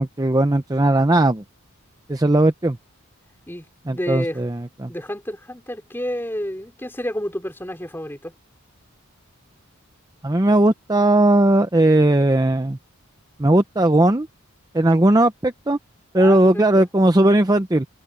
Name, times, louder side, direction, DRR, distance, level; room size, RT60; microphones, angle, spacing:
voice 1, 0.0-1.4 2.1-2.8 3.9-4.9 10.2-12.8 13.4-14.3 14.7-15.8 16.1-17.9, right 1 dB, 15° right, 0.6 m, -17 dB
voice 2, 3.5-4.4 4.9-8.3 16.1-16.9, equal, 10° left, 4.5 m, -30 dB
head